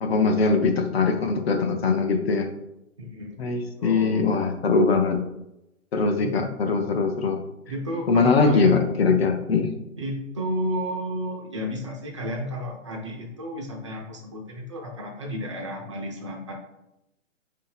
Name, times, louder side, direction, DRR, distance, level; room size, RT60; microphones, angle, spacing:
voice 1, 0.0-2.5 3.4-5.2 5.9-7.4 8.1-9.7, left 4 dB, 50° left, 5 dB, 0.6 m, -22 dB
voice 2, 3.0-4.5 6.2-6.5 7.7-9.2 10.0-16.5, equal, 25° right, 0 dB, 0.5 m, -32 dB
4.0 x 2.8 x 4.0 m, 0.89 s
hypercardioid pair, 165°, 39 cm